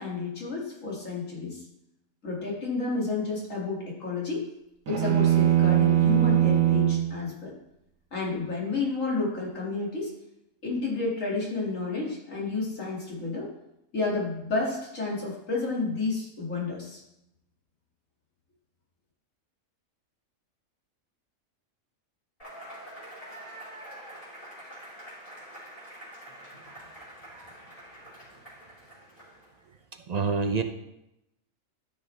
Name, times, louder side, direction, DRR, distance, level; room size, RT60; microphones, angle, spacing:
voice 1, 0.0-1.6 2.2-4.4 4.9-7.5 8.1-10.1 10.6-13.5 13.9-17.0, left 3 dB, 65° left, -4 dB, 2.7 m, -30 dB
sound 1, 4.9-7.1, right 12 dB, 70° right, 1.2 m, -21 dB
Cheering / Applause / Crowd, 22.4-29.6, right 1 dB, 25° left, 4.3 m, -46 dB
voice 2, 29.9-30.6, right 4 dB, 50° right, 6 dB, 0.5 m, -29 dB
13.5 x 6.5 x 3.3 m, 0.85 s
omnidirectional pair, 1.4 m